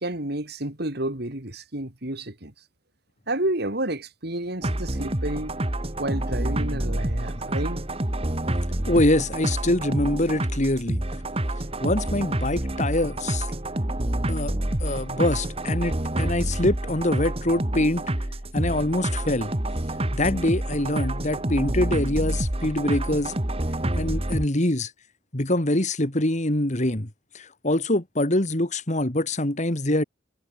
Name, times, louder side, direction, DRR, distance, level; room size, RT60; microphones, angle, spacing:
voice 1, 0.0-2.5 3.3-5.5 6.0-7.8, right 1 dB, 55° right, 3.2 m, -30 dB
sound 1, 4.6-24.5, right 1 dB, 30° right, 1.8 m, -28 dB
voice 2, 8.9-11.0 11.8-13.5 14.3-18.0 18.5-19.5 20.1-23.4 24.0-24.9 25.3-27.1 27.3-30.0, left 1 dB, 35° left, 2.4 m, -24 dB
head